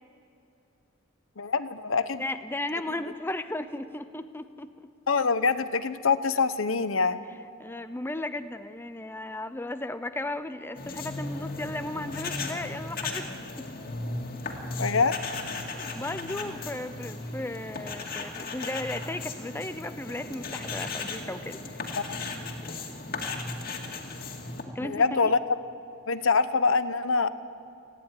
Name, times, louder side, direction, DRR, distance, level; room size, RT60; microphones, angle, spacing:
voice 1, 1.4-2.2 5.1-7.2 14.8-15.4 22.1-22.2 24.8-25.4 26.1-27.3, left 4 dB, 80° left, 12 dB, 0.9 m, -25 dB
voice 2, 2.2-4.9 7.6-13.7 15.8-21.9 24.7-25.3, left 1 dB, 10° left, 10 dB, 0.6 m, -35 dB
sound 1, 10.7-24.6, left 3 dB, 45° left, 2.2 m, -36 dB
28.5 x 10.5 x 9.8 m, 2.8 s
head